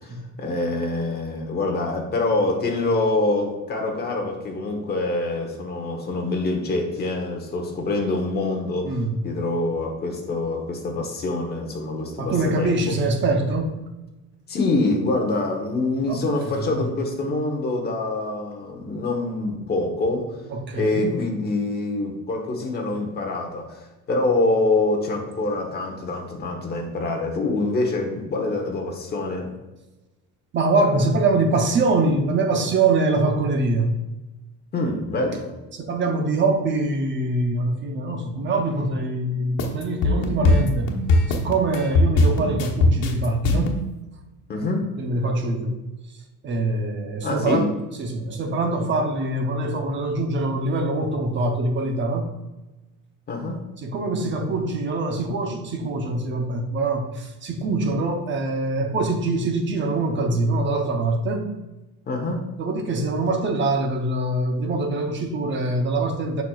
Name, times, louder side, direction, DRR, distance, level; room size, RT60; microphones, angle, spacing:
voice 1, 0.0-9.0 9.2-12.8 14.5-20.3 20.7-29.5 34.7-35.5 44.5-44.9 47.2-47.7 53.3-53.6 62.1-62.4, left 2 dB, 30° left, 2 dB, 1.1 m, -25 dB
voice 2, 8.8-9.2 12.2-13.7 15.9-16.2 16.5-16.9 20.5-21.2 30.5-33.9 35.7-40.9 41.3-43.7 45.0-45.7 46.4-47.7 48.0-52.3 53.8-61.5 62.6-66.4, right 2 dB, 35° right, 4 dB, 0.8 m, -24 dB
sound 1, 39.6-43.8, left 2 dB, 85° left, 1.2 m, -19 dB
7.3 x 5.8 x 2.4 m, 1.1 s
cardioid pair, 165°, 33 cm